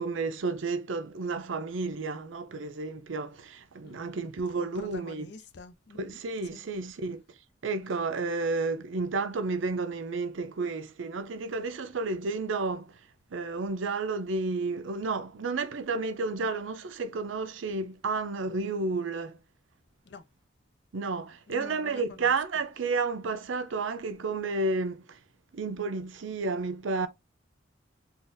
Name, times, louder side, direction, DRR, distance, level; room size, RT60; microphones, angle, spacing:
voice 1, 0.0-5.3 6.0-7.2 7.6-12.9 13.3-19.4 20.9-25.2 25.5-27.1, right 3 dB, 80° right, 0.5 m, -31 dB
voice 2, 3.8-4.2 4.6-6.2 6.5-6.6 20.1-20.2 21.5-22.3, left 4 dB, 60° left, 0.5 m, -47 dB
3.8 x 2.4 x 2.5 m
head